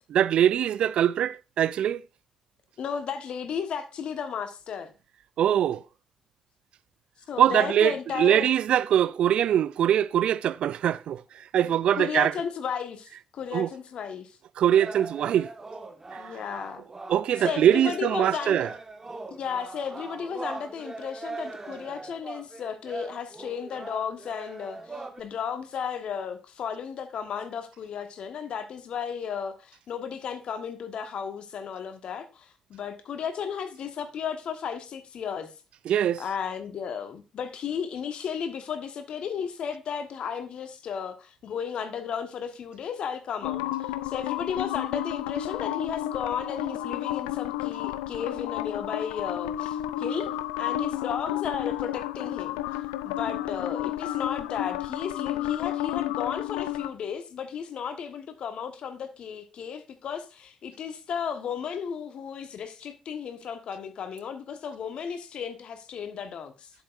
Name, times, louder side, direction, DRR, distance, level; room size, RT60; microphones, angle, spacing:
voice 1, 0.1-2.0 5.4-5.8 7.4-12.3 13.5-13.7 14.6-15.5 16.1-16.2 17.1-18.7 35.9-36.2, right 10 dB, 60° right, 0.3 m, -23 dB
voice 2, 2.8-4.9 7.3-8.5 11.6-14.4 16.2-16.8 17.4-18.7 19.3-35.5 36.2-50.3 50.6-52.6 53.0-66.7, left 7 dB, 60° left, 1.2 m, -34 dB
sound 1, 14.7-25.2, right 3 dB, 25° right, 1.5 m, -41 dB
sound 2, 43.4-56.9, left 13 dB, 80° left, 0.4 m, -31 dB
11.0 x 7.3 x 2.5 m
figure-of-eight pair, 40°, 2 cm